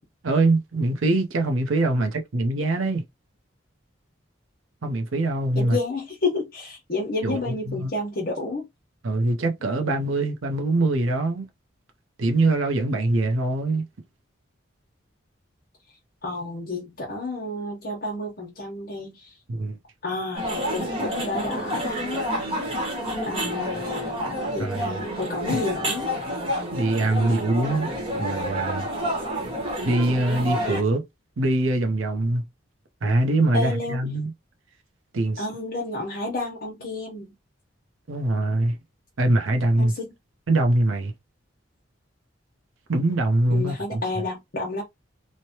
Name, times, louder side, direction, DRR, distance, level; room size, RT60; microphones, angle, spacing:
voice 1, 0.2-3.0 4.8-5.8 7.2-7.9 9.0-11.5 12.2-13.9 19.5-19.8 24.6-25.0 25.5-25.6 26.7-27.9 28.2-28.9 29.8-31.0 31.4-32.4 33.0-34.3 35.1-35.4 38.1-38.8 39.2-39.9 40.5-41.1 42.9-44.0, right 2 dB, 90° right, 0.7 m, -23 dB
voice 2, 5.5-8.7 16.2-19.4 20.0-22.4 23.2-26.1 33.5-34.0 35.4-37.3 39.8-40.1 43.5-44.8, left 2 dB, 50° left, 0.8 m, -30 dB
sound 1, 20.4-30.8, equal, 30° right, 1.0 m, -29 dB
3.1 x 2.1 x 2.8 m
head